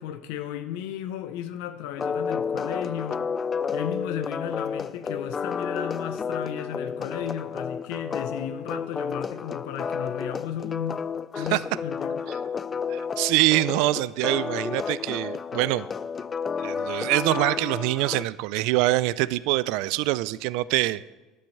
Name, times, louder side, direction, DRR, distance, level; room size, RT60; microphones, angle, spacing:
voice 1, 0.0-3.3 3.7-11.1 11.4-12.2, left 10 dB, 80° left, 9 dB, 0.6 m, -34 dB
sound 1, 2.0-18.2, left 6 dB, 25° left, 0.3 m, -31 dB
voice 2, 12.9-15.9 16.6-21.1, right 18 dB, 75° right, 18 dB, 0.3 m, -24 dB
10.5 x 5.4 x 7.7 m, 1.2 s
supercardioid pair, 125°, 0 cm